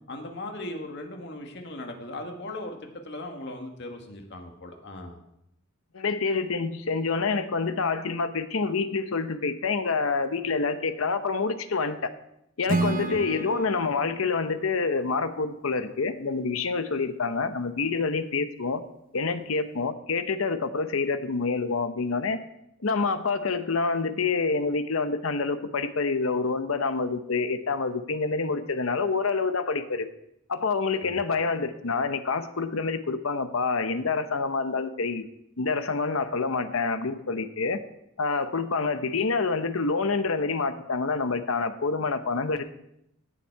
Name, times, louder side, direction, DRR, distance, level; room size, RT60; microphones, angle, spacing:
voice 1, 0.1-5.2 13.0-13.2 31.0-31.2, left 1 dB, 55° left, 3 dB, 1.8 m, -38 dB
voice 2, 5.9-12.1 12.6-18.8 19.1-22.4 22.8-30.1 30.5-35.2 35.6-37.8 38.2-42.6, left 4 dB, 85° left, 10 dB, 0.8 m, -27 dB
Acoustic guitar / Strum, 12.7-15.9, right 3 dB, 40° right, 0.7 m, -32 dB
17.0 x 7.3 x 4.6 m, 0.80 s
head